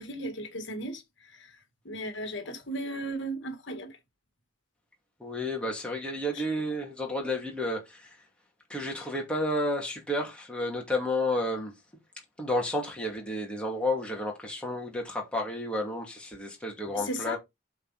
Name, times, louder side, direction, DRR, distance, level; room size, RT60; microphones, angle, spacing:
voice 1, 0.0-1.6 1.9-4.0 17.0-17.4, right 1 dB, 65° left, 1.8 m, -36 dB
voice 2, 5.2-8.2 8.7-11.7 12.4-17.4, left 1 dB, 5° left, 2.5 m, -31 dB
8.2 x 4.3 x 4.2 m
head